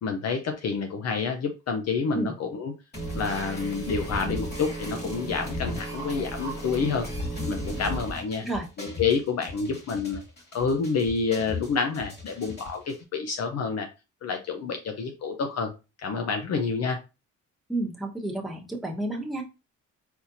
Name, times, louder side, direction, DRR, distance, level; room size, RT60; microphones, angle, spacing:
voice 1, 0.0-2.7 3.1-7.1 7.5-8.4 8.8-10.2 10.5-13.9 14.2-15.7 16.0-17.0, left 5 dB, 60° left, 5 dB, 0.7 m, -28 dB
sound 1, 2.9-13.0, equal, 35° left, 2.5 m, -35 dB
voice 2, 17.7-19.4, right 2 dB, ahead, -2 dB, 1.2 m, -31 dB
4.3 x 4.2 x 2.7 m, 0.28 s
cardioid pair, 90°, 30 cm